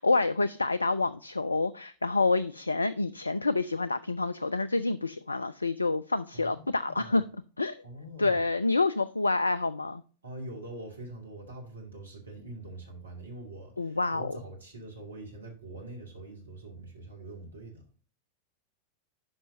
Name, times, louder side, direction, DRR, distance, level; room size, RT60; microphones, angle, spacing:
voice 1, 0.0-7.3 7.6-7.8 8.2-10.0 13.8-14.2, left 3 dB, 80° left, 0.3 m, -28 dB
voice 2, 6.3-7.2 7.8-8.4 10.2-17.8, right 2 dB, 75° right, 2.2 m, -44 dB
10.5 x 5.7 x 2.6 m
figure-of-eight pair, 90°, 0 cm